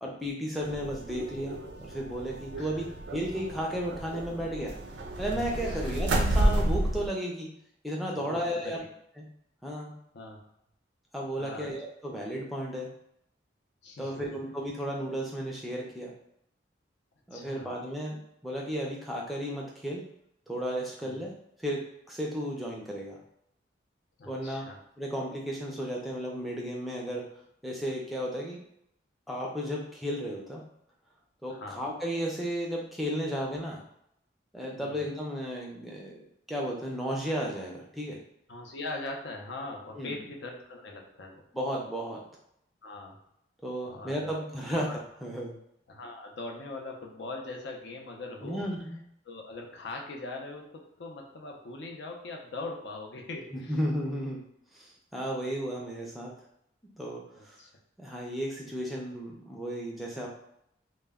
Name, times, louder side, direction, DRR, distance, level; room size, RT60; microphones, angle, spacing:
voice 1, 0.0-2.9 3.1-4.8 5.2-7.5 7.8-8.8 9.2-9.3 9.6-9.9 11.1-12.9 14.0-16.1 17.3-18.2 18.4-20.0 20.5-21.3 21.6-21.8 22.1-23.2 24.3-24.7 25.0-27.2 27.6-28.6 29.3-30.6 31.4-33.8 34.5-36.2 36.5-38.2 40.0-40.1 41.5-42.2 43.6-44.9 45.2-45.6 48.4-49.0 53.5-54.4 54.7-56.3 57.0-57.6 58.0-60.3, equal, ahead, -3 dB, 0.4 m, -34 dB
sound 1, 0.6-7.1, right 1 dB, 70° right, 0.4 m, -31 dB
voice 2, 8.1-8.9 10.1-10.4 11.4-11.7 13.8-14.2 17.3-17.7 21.0-21.3 24.2-24.8 31.5-31.9 34.8-35.1 38.5-41.4 42.8-43.2 43.9-44.4 44.7-45.0 45.9-48.7 49.3-53.8 55.3-55.5 57.4-57.7, left 2 dB, 70° left, 1 dB, 0.5 m, -41 dB
2.1 x 2.1 x 3.4 m, 0.76 s
head